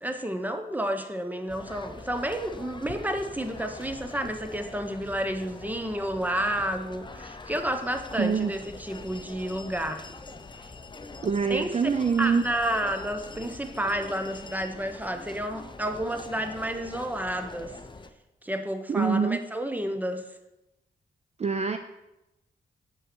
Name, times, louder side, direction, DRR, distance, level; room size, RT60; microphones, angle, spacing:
voice 1, 0.0-10.1 10.6-10.7 11.5-11.7 12.2-17.8 18.4-20.3, right 1 dB, 10° right, 7 dB, 1.0 m, -30 dB
sound 1, 1.5-18.1, left 3 dB, 25° left, 0.7 m, -43 dB
voice 2, 8.2-8.5 11.2-12.5 18.9-19.4 21.4-21.8, right 5 dB, 35° right, 8 dB, 0.5 m, -25 dB
7.9 x 5.5 x 6.1 m, 0.94 s
cardioid pair, 65°, 18 cm